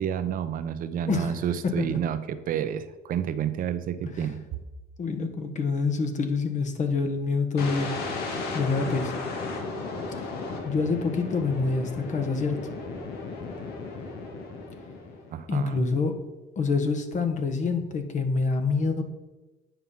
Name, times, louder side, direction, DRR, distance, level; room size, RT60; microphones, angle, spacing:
voice 1, 0.0-4.5 15.3-15.8, right 9 dB, 60° right, 11 dB, 0.7 m, -30 dB
voice 2, 1.6-2.0 4.1-4.3 5.0-7.9 8.5-9.1 10.6-12.6 15.5-16.1 16.5-19.0, left 4 dB, 45° left, 7 dB, 1.4 m, -26 dB
sound 1, 7.6-15.4, left 3 dB, 75° left, 1.8 m, -35 dB
9.2 x 5.5 x 5.7 m, 1.1 s
cardioid pair, 95°, 17 cm